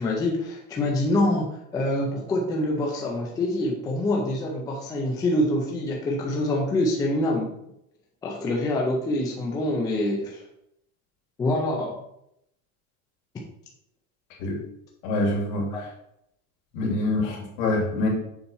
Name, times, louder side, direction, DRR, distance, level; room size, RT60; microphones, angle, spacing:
voice 1, 0.0-7.5 8.2-10.4 11.4-11.9 13.3-13.4 15.7-15.8, left 1 dB, 10° left, -1 dB, 0.4 m, -25 dB
voice 2, 15.0-15.8 16.7-18.1, left 2 dB, 60° left, -1 dB, 2.7 m, -25 dB
7.0 x 4.3 x 5.4 m, 0.79 s
cardioid pair, 180°, 40 cm